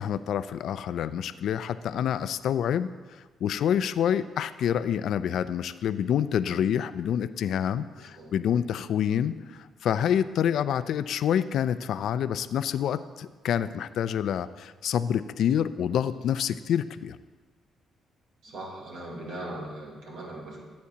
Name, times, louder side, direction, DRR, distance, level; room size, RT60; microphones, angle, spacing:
voice 1, 0.0-2.9 3.4-17.2, left 9 dB, 70° left, 13 dB, 0.4 m, -27 dB
voice 2, 8.0-8.3 15.9-16.2 18.4-20.7, right 1 dB, 80° right, -2 dB, 2.6 m, -40 dB
16.0 x 8.4 x 2.8 m, 1.4 s
cardioid pair, 90°, 0 cm